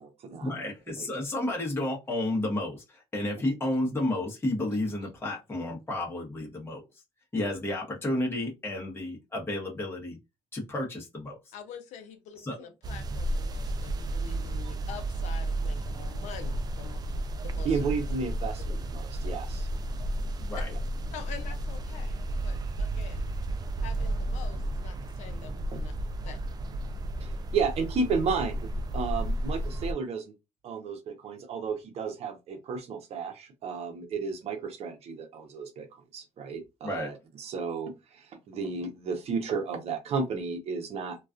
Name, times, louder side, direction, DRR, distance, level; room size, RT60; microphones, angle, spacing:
voice 1, 0.4-6.8 7.3-10.2 10.5-11.4 12.4-12.7 20.4-20.7 36.8-37.1, left 1 dB, 20° left, 0.8 m, -31 dB
voice 2, 11.5-17.0 17.6-17.8 20.5-20.6 21.1-23.3 23.8-25.9 26.2-26.5, left 7 dB, 90° left, 0.5 m, -46 dB
sound 1, 12.8-29.9, right 1 dB, 35° right, 0.3 m, -32 dB
voice 3, 17.6-19.7 20.7-20.8 25.7-25.8 27.2-28.7 28.9-30.3 30.6-41.2, right 5 dB, 60° right, 0.7 m, -33 dB
2.3 x 2.3 x 2.4 m
cardioid pair, 105°, 12 cm